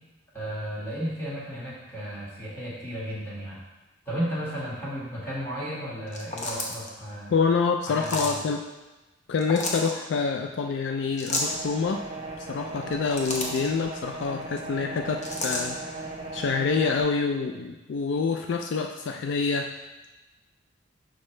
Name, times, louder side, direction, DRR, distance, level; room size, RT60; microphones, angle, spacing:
voice 1, 0.3-3.6 4.1-7.3 7.9-8.4, equal, 10° left, -8 dB, 1.8 m, -34 dB
sound 1, 6.1-6.9 8.0-8.4 9.4-9.9 11.2-11.6 12.8-13.7 15.2-15.6, left 2 dB, 40° left, 0.8 m, -30 dB
voice 2, 7.3-8.6 9.3-12.0 12.4-19.8, left 5 dB, 65° left, 4 dB, 0.3 m, -27 dB
sound 2, 11.4-17.0, right 3 dB, 30° right, 1.0 m, -38 dB
6.3 x 4.9 x 3.2 m, 1.1 s
head